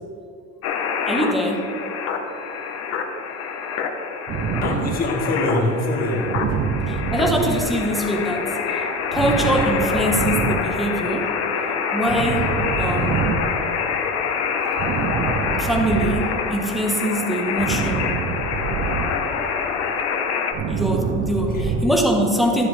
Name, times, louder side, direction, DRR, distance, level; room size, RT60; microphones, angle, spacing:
sound 1, 0.6-20.5, left 6 dB, 55° left, 1.0 m, -26 dB
voice 1, 1.1-1.7 6.9-11.3 11.9-13.5 15.6-18.1 20.7-22.7, equal, ahead, 0 dB, 1.0 m, -23 dB
sound 2, 4.3-16.9 17.2-21.9, right 6 dB, 40° right, 0.5 m, -27 dB
voice 2, 4.6-6.6 21.3-21.7, left 1 dB, 30° left, 0 dB, 1.6 m, -24 dB
12.5 x 9.9 x 3.3 m, 2.8 s
cardioid pair, 160°, 30 cm